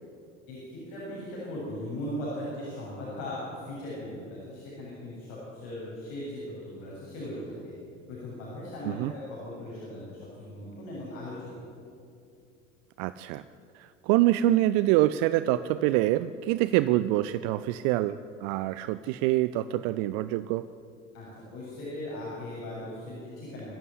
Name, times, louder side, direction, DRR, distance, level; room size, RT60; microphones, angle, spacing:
voice 1, 0.5-7.7 8.1-11.7 21.1-23.8, left 1 dB, 60° left, -7 dB, 7.7 m, -38 dB
voice 2, 13.0-13.4 14.1-20.7, right 15 dB, 50° right, 14 dB, 0.7 m, -25 dB
25.5 x 12.5 x 9.9 m, 2.5 s
figure-of-eight pair, 70°, 37 cm